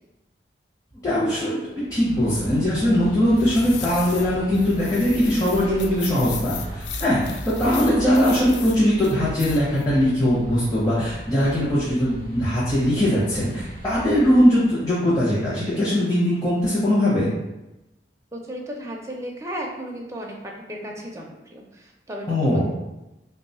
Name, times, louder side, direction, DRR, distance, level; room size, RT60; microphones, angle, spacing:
voice 1, 0.9-1.6 1.9-17.3 22.3-22.6, equal, 20° left, -10 dB, 0.8 m, -20 dB
sound 1, 1.7-15.2, right 1 dB, 40° left, 1.1 m, -37 dB
sound 2, 3.4-4.3 4.5-8.8 9.0-9.9 10.2-10.3, left 8 dB, 70° left, 0.3 m, -37 dB
voice 2, 18.3-22.6, equal, 15° right, -1 dB, 0.5 m, -35 dB
3.0 x 2.3 x 4.1 m, 0.95 s
head